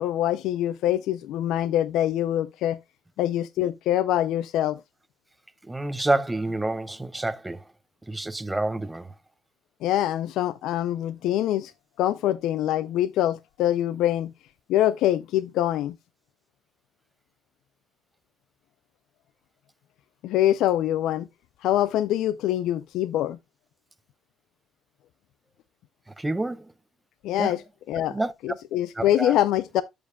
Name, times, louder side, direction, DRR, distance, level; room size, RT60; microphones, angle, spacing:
voice 1, 0.0-2.8 3.2-4.8 9.8-11.7 12.0-14.3 14.7-16.0 20.2-21.3 21.6-23.4 27.2-27.6 27.9-28.2 28.4-29.8, left 12 dB, 75° left, 0.4 m, -24 dB
voice 2, 5.7-7.6 8.1-9.1 26.2-26.7 27.4-27.5 28.1-28.3 29.0-29.4, right 2 dB, 10° right, 0.8 m, -28 dB
13.5 x 5.2 x 2.2 m
supercardioid pair, 80°, 0 cm